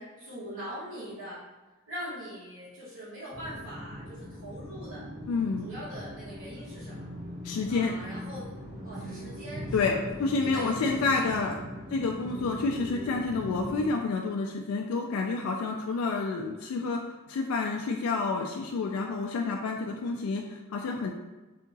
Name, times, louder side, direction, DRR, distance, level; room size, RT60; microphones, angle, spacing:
voice 1, 0.0-1.4 1.9-5.0 5.6-7.0 7.7-8.4 8.8-10.0 10.5-11.1 11.4-11.5 11.8-11.9 12.4-12.5 15.7-15.8, equal, 70° right, -13 dB, 1.3 m, -42 dB
sound 1, 3.3-13.9, equal, 50° right, 0.9 m, -40 dB
voice 2, 5.3-5.6 7.4-7.9 9.7-11.5 11.9-17.0 17.3-21.1, left 4 dB, 90° left, 2 dB, 0.3 m, -29 dB
3.5 x 2.8 x 2.6 m, 1.2 s
head